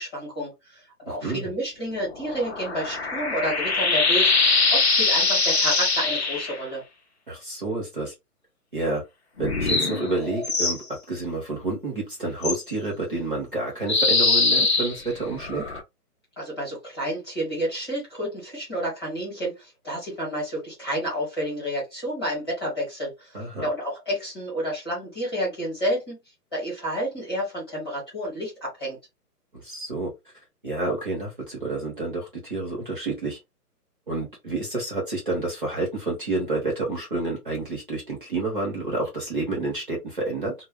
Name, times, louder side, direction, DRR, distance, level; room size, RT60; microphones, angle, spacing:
voice 1, 0.0-6.8 16.4-26.2 26.5-29.0, equal, 15° left, -6 dB, 1.1 m, -30 dB
voice 2, 1.1-1.5 7.3-8.1 8.7-9.0 9.4-15.6 23.3-23.7 29.6-30.1 30.6-33.4 34.1-40.5, right 3 dB, 35° right, -2 dB, 0.8 m, -29 dB
sound 1, 2.1-6.6 9.4-10.8 12.4-12.6 13.9-15.8, left 3 dB, 45° left, 0.6 m, -23 dB
2.2 x 2.1 x 3.5 m, 0.21 s
hypercardioid pair, 175°, 47 cm